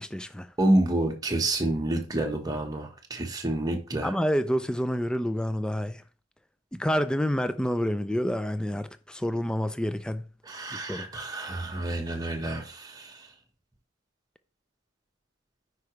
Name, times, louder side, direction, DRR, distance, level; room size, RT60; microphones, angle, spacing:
voice 1, 0.0-0.5 4.0-6.0 6.7-10.2 10.7-11.1, equal, 5° left, 0.3 m, -28 dB
voice 2, 0.6-4.1 10.5-13.2, right 1 dB, 20° right, 1.1 m, -28 dB
9.6 x 4.7 x 3.1 m
head